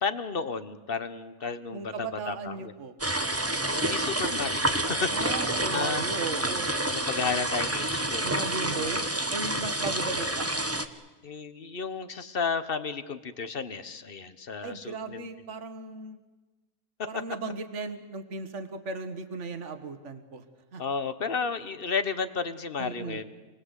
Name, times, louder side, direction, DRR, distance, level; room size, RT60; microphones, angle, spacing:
voice 1, 0.0-2.7 3.7-6.0 6.9-8.9 11.2-15.2 17.0-17.1 20.8-23.2, left 5 dB, 40° left, 12 dB, 1.3 m, -33 dB
voice 2, 1.7-2.9 5.1-6.7 8.2-9.0 9.3-10.5 14.6-16.2 17.1-20.4 20.7-20.8 22.8-23.2, right 3 dB, 55° right, 9 dB, 1.8 m, -36 dB
sound 1, 3.0-10.9, right 1 dB, 10° right, 1.0 m, -28 dB
28.0 x 19.5 x 8.2 m, 1.2 s
omnidirectional pair, 1.5 m